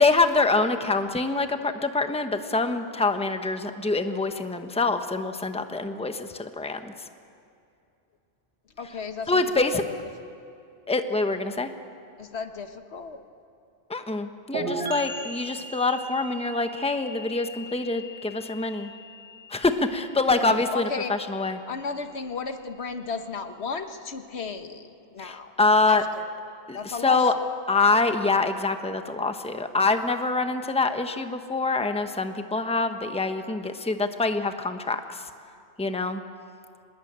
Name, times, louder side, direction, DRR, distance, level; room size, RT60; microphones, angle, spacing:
voice 1, 0.0-6.9 9.3-9.8 10.9-11.7 13.9-18.9 19.5-21.6 25.2-26.0 26.7-27.3 27.7-35.2 35.8-36.2, left 3 dB, 5° left, 7 dB, 1.0 m, -25 dB
voice 2, 8.8-9.8 12.2-13.3 20.4-21.1 21.7-25.5 25.8-26.3 26.7-27.3, left 5 dB, 80° left, 8 dB, 1.5 m, -34 dB
sound 1, 14.5-22.1, right 2 dB, 80° right, 2.5 m, -38 dB
24.5 x 20.5 x 8.8 m, 2.6 s
omnidirectional pair, 1.1 m